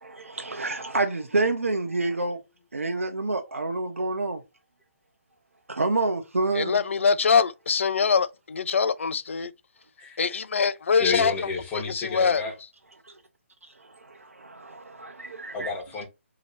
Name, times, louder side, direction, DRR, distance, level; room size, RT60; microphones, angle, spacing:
voice 1, 0.0-2.4 2.7-4.4 5.7-6.8 13.1-13.2 13.6-15.7, right 2 dB, 85° right, 0.6 m, -28 dB
voice 2, 6.5-9.5 10.2-11.3 11.7-12.4, left 5 dB, 65° left, 0.4 m, -23 dB
voice 3, 10.0-10.4 11.0-12.5 15.5-16.1, left 4 dB, 20° left, 1.3 m, -31 dB
2.9 x 2.8 x 4.1 m
figure-of-eight pair, 140°, 7 cm